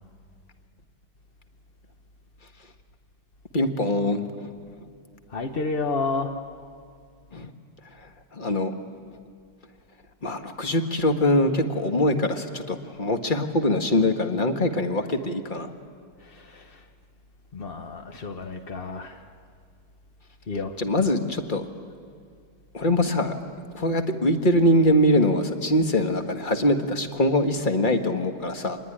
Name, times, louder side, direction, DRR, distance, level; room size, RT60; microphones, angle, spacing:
voice 1, 3.5-4.5 7.3-7.5 8.3-8.7 10.2-15.7 20.8-21.6 22.7-23.3 23.7-28.8, left 1 dB, 25° left, 6 dB, 1.3 m, -23 dB
voice 2, 5.3-6.3 16.3-16.7 17.5-19.2 20.5-20.7, left 3 dB, 50° left, 5 dB, 0.7 m, -30 dB
26.0 x 21.0 x 10.0 m, 2.2 s
omnidirectional pair, 2.4 m